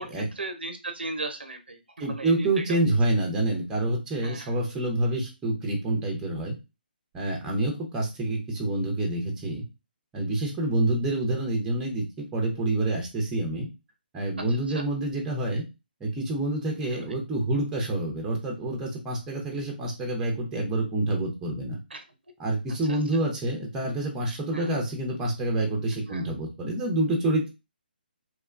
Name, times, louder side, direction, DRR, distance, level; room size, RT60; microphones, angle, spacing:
voice 1, 0.0-2.8 4.2-4.6 14.7-14.8 16.9-17.0 21.9-22.0 22.9-23.0 24.5-24.7 26.1-26.3, right 2 dB, 85° right, 6 dB, 0.6 m, -37 dB
voice 2, 2.0-6.5 7.1-9.6 10.1-13.7 14.1-15.6 16.0-21.8 22.4-27.5, right 1 dB, 10° right, 0 dB, 0.6 m, -27 dB
2.9 x 2.2 x 2.3 m, 0.26 s
figure-of-eight pair, 145°, 5 cm